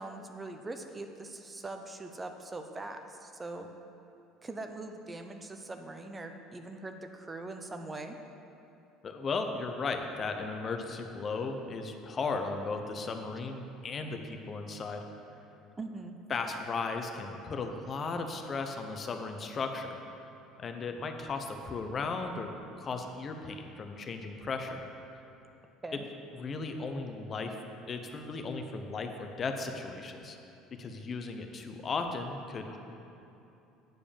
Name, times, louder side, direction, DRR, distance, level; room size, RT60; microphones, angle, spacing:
voice 1, 0.0-3.7 4.4-8.2 15.8-16.2 25.8-26.1, right 2 dB, 20° right, 6 dB, 0.7 m, -42 dB
voice 2, 9.0-15.0 16.3-20.0 20.6-22.5 22.8-24.8 26.3-27.6 27.9-30.4 30.8-32.8, left 4 dB, 40° left, 5 dB, 0.9 m, -36 dB
9.3 x 5.0 x 6.8 m, 2.9 s
supercardioid pair, 80°, 0 cm